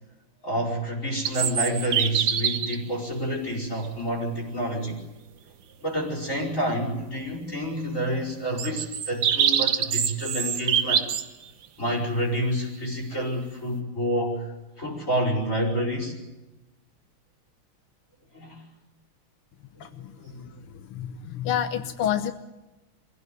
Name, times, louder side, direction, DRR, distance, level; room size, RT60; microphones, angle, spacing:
voice 1, 0.4-5.0 5.8-11.1 11.8-16.2 18.3-18.6 19.8-19.9 20.2-20.5, equal, 35° left, -1 dB, 6.1 m, -28 dB
sound 1, 1.3-2.8 3.9-4.0 8.6-11.3, right 8 dB, 55° right, 1.5 m, -25 dB
voice 2, 19.8-20.1 20.8-22.3, left 9 dB, 85° left, 10 dB, 2.0 m, -28 dB
23.5 x 16.5 x 9.3 m, 1.1 s
omnidirectional pair, 2.3 m